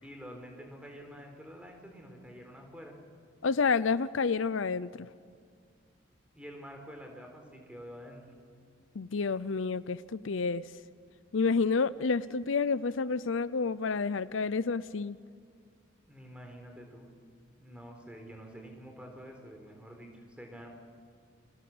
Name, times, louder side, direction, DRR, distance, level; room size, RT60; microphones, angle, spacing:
voice 1, 0.0-3.0 6.3-8.2 16.1-17.1 17.6-20.7, equal, 5° right, 3 dB, 4.2 m, -48 dB
voice 2, 3.4-5.1 8.9-10.6 11.3-15.2, left 4 dB, 75° left, 17 dB, 0.6 m, -29 dB
30.0 x 23.5 x 7.9 m, 2.2 s
head